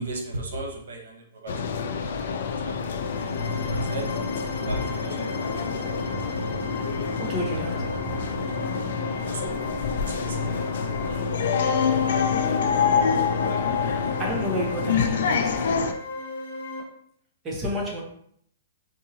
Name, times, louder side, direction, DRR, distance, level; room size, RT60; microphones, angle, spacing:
voice 1, 0.0-5.9 9.2-11.7, right 1 dB, 85° right, 1.0 m, -37 dB
sound 1, 1.5-15.9, left 6 dB, 70° left, 0.4 m, -27 dB
sound 2, 2.7-16.8, left 1 dB, 90° left, 0.8 m, -36 dB
sound 3, 6.1-10.8 11.1-11.2, right 3 dB, 50° right, 0.5 m, -42 dB
voice 2, 7.2-8.0 14.2-15.6 17.4-18.0, left 1 dB, 20° right, 1.0 m, -30 dB
4.5 x 2.6 x 2.8 m
hypercardioid pair, 145°, 0 cm